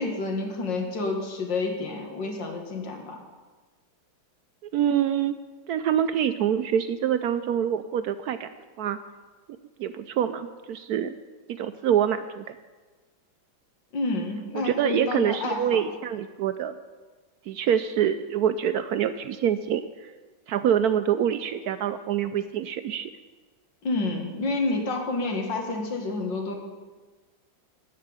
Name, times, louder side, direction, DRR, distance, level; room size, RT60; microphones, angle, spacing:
voice 1, 0.0-3.2 13.9-15.8 23.8-26.6, left 3 dB, 70° left, 2 dB, 2.4 m, -29 dB
voice 2, 4.7-5.4 5.7-8.5 8.8-9.0 9.8-11.2 11.5-12.5 14.5-16.7 17.5-20.1 20.5-23.1, right 9 dB, 75° right, 11 dB, 0.9 m, -25 dB
13.5 x 5.7 x 9.6 m, 1.3 s
omnidirectional pair, 2.1 m